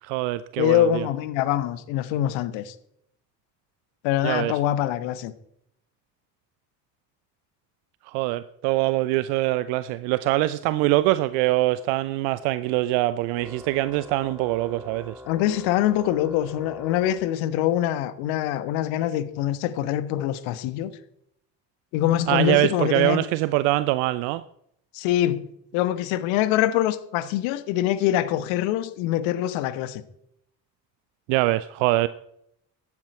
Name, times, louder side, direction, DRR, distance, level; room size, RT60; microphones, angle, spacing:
voice 1, 0.0-1.1 4.2-4.5 8.1-15.1 22.3-24.4 31.3-32.1, right 17 dB, 65° right, 0.7 m, -23 dB
voice 2, 0.6-2.7 4.0-5.3 15.3-20.9 21.9-23.2 24.9-25.4 25.7-30.0, left 12 dB, 65° left, 1.2 m, -24 dB
Organ, 13.4-17.9, left 1 dB, 5° right, 2.4 m, -44 dB
15.0 x 11.5 x 4.4 m
figure-of-eight pair, 45°, 49 cm